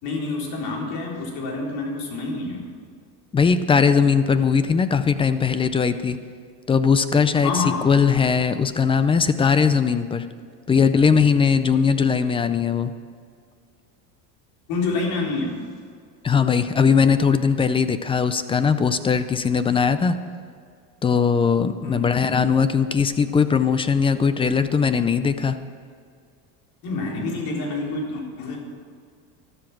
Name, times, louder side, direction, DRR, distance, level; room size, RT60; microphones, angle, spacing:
voice 1, 0.0-2.7 7.4-7.8 14.7-15.6 21.8-22.0 26.8-28.6, left 3 dB, 60° left, -1 dB, 3.9 m, -27 dB
voice 2, 3.3-6.2 6.7-10.3 10.7-12.9 16.2-20.2 21.0-25.6, left 6 dB, 15° left, 11 dB, 0.4 m, -19 dB
12.5 x 12.5 x 6.0 m, 2.2 s
supercardioid pair, 135°, 41 cm